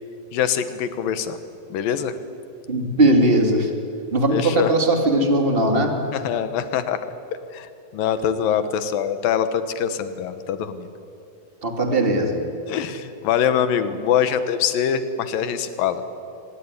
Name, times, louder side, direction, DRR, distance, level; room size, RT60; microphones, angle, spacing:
voice 1, 0.3-1.4 1.7-2.1 4.3-4.7 6.1-7.0 7.5-10.9 12.7-16.0, left 8 dB, 75° left, 11 dB, 2.9 m, -23 dB
voice 2, 2.7-3.7 4.1-5.9 11.6-12.4, right 1 dB, 20° right, 4 dB, 2.2 m, -19 dB
24.5 x 20.0 x 9.8 m, 2.6 s
omnidirectional pair, 4.1 m